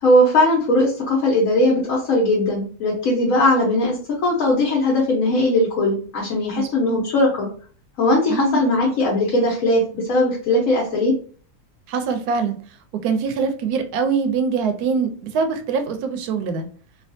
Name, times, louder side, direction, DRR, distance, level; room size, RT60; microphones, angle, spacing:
voice 1, 0.0-7.5 8.0-11.1, left 1 dB, 65° left, -4 dB, 1.2 m, -19 dB
voice 2, 6.5-7.0 8.3-8.6 11.9-12.6 13.0-16.7, right 5 dB, 80° right, 6 dB, 1.1 m, -23 dB
3.3 x 2.3 x 2.6 m, 0.44 s
omnidirectional pair, 1.6 m